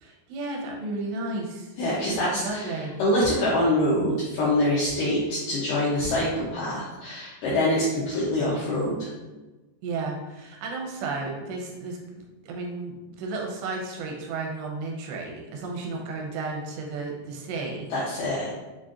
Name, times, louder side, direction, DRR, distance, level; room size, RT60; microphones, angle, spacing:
voice 1, 0.0-1.7 2.2-2.9 9.8-12.0 12.4-17.9, right 3 dB, 85° right, 0 dB, 2.9 m, -33 dB
voice 2, 1.8-9.1 17.9-18.6, left 1 dB, 85° left, -7 dB, 1.9 m, -25 dB
7.2 x 2.4 x 2.5 m, 1.2 s
omnidirectional pair, 4.9 m